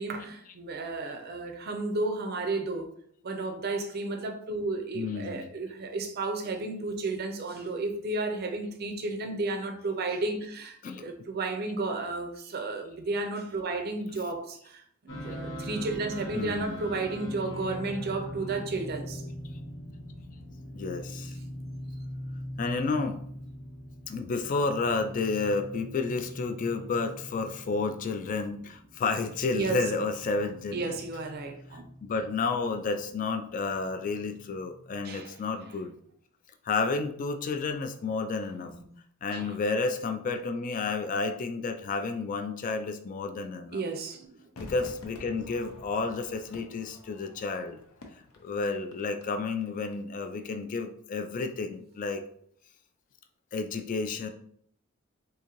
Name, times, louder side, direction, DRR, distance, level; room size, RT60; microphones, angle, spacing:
voice 1, 0.0-2.9 3.2-14.8 15.2-19.2 29.5-29.8 30.7-31.8 35.0-35.3 38.6-38.8 39.3-39.5 43.7-44.4, right 3 dB, 50° right, 0.5 m, -33 dB
voice 2, 4.9-5.5 10.8-11.0 14.1-14.2 16.3-17.0 20.7-21.3 22.6-23.2 24.1-31.0 31.7-35.9 36.6-38.7 39.2-43.8 44.6-47.8 48.4-52.2 53.5-54.3, left 4 dB, 40° left, 0.3 m, -31 dB
sound 1, 15.1-35.0, equal, 60° left, 0.9 m, -42 dB
Crowd / Fireworks, 44.6-49.9 50.2-50.3, left 1 dB, 85° left, 0.6 m, -49 dB
3.7 x 2.6 x 3.0 m
head